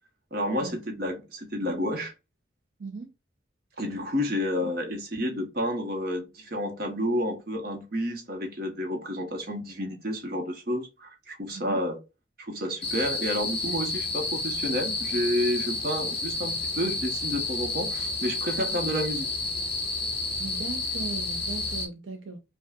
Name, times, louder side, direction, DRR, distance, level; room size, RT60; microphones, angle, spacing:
voice 1, 0.3-2.1 3.8-12.0 12.4-19.3, equal, 55° right, 1.1 m, -30 dB
voice 2, 2.8-3.1 4.6-4.7 11.5-11.8 20.4-22.4, right 4 dB, 85° right, 0.7 m, -38 dB
sound 1, 12.8-21.9, left 3 dB, 30° left, 1.1 m, -30 dB
5.2 x 2.4 x 2.4 m
head